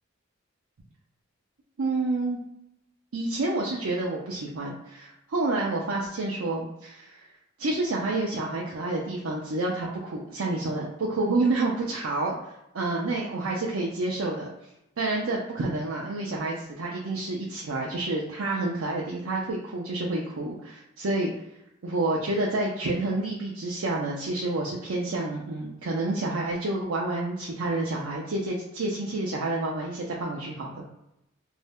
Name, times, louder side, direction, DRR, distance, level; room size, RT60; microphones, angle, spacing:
voice 1, 1.8-2.4 3.1-7.3 7.6-14.5 15.0-21.3 21.8-30.8, right 2 dB, 85° right, -4 dB, 0.5 m, -29 dB
2.6 x 2.1 x 3.4 m, 0.84 s
head